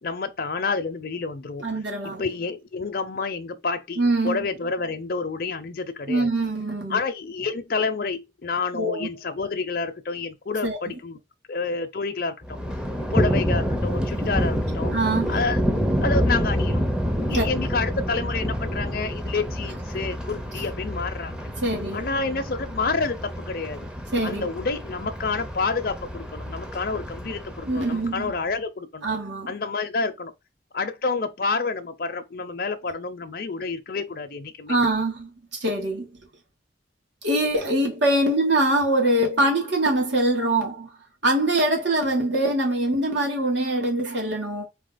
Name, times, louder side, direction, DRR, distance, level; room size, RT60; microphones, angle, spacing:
voice 1, 0.0-1.6 2.2-6.3 6.9-11.2 11.5-12.6 13.1-14.9 15.3-15.6 16.0-16.8 17.3-21.4 21.9-23.9 24.2-29.1 29.5-30.3 30.7-34.8, left 4 dB, 55° left, 0.6 m, -29 dB
voice 2, 1.6-2.2 4.0-4.5 6.1-7.0 8.7-9.1 10.6-10.9 14.9-15.4 17.3-17.5 21.6-22.1 24.1-24.5 27.7-28.3 29.0-29.5 34.7-35.3 35.6-36.1 37.2-40.9 41.2-44.7, right 1 dB, 80° right, 2.3 m, -23 dB
Thunder, 12.4-28.4, equal, 5° right, 0.7 m, -28 dB
4.2 x 2.9 x 3.9 m
head